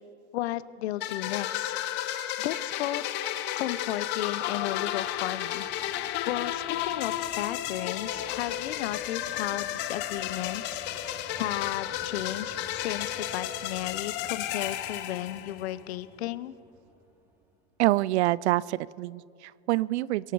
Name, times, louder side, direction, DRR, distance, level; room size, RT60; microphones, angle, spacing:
voice 1, 0.3-1.8 2.4-3.1 3.5-5.7 5.9-10.8 11.4-16.5, left 14 dB, 75° left, 17 dB, 0.7 m, -34 dB
sound 1, 1.0-15.8, left 12 dB, 35° left, 0.8 m, -33 dB
sound 2, 3.3-17.8, right 1 dB, 5° right, 1.5 m, -53 dB
voice 2, 17.8-20.3, right 17 dB, 85° right, 23 dB, 0.5 m, -26 dB
24.0 x 11.5 x 4.7 m, 2.4 s
supercardioid pair, 160°, 33 cm